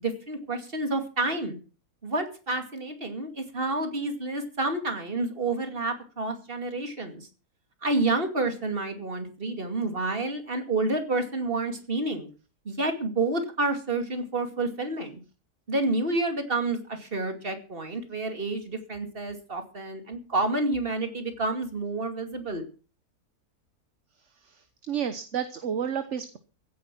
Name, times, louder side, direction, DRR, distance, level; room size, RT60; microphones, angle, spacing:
voice 1, 0.0-1.6 2.0-7.3 7.8-12.3 12.7-15.2 15.7-22.7, right 2 dB, 35° right, 7 dB, 2.6 m, -29 dB
voice 2, 24.9-26.4, right 8 dB, 50° right, 11 dB, 1.3 m, -30 dB
16.0 x 9.6 x 6.1 m, 0.36 s
omnidirectional pair, 1.6 m